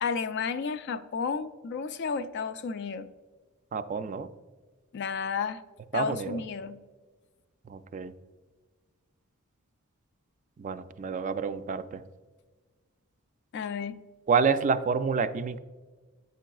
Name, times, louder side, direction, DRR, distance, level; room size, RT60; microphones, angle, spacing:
voice 1, 0.0-3.1 4.9-5.6 5.9-6.8 13.5-14.0, left 5 dB, 55° left, 10 dB, 0.4 m, -32 dB
voice 2, 3.7-4.3 5.9-6.4 7.7-8.1 10.6-12.0 14.3-15.6, right 5 dB, 35° right, 11 dB, 0.3 m, -28 dB
8.3 x 5.8 x 2.3 m, 1.3 s
head